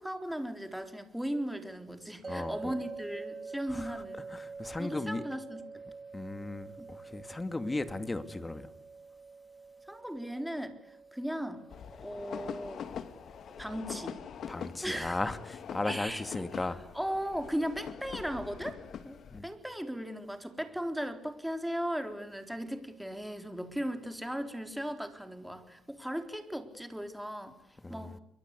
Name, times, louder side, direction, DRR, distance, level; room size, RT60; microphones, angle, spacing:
voice 1, 0.0-4.3 4.8-5.6 6.8-6.9 9.9-11.6 12.0-12.8 13.5-14.2 14.8-15.2 15.8-16.5 16.9-18.8 19.0-27.6 27.9-28.2, equal, ahead, 3.8 m, -37 dB
sound 1, 2.2-15.4, right 4 dB, 30° right, 1.7 m, -47 dB
voice 2, 2.3-2.7 3.7-4.0 4.3-5.2 6.1-8.7 14.5-16.8 19.3-19.5 27.8-28.2, left 2 dB, 20° left, 2.3 m, -36 dB
sound 2, 11.7-19.4, left 7 dB, 65° left, 2.2 m, -43 dB
30.0 x 23.0 x 8.3 m
cardioid pair, 90°, 0 cm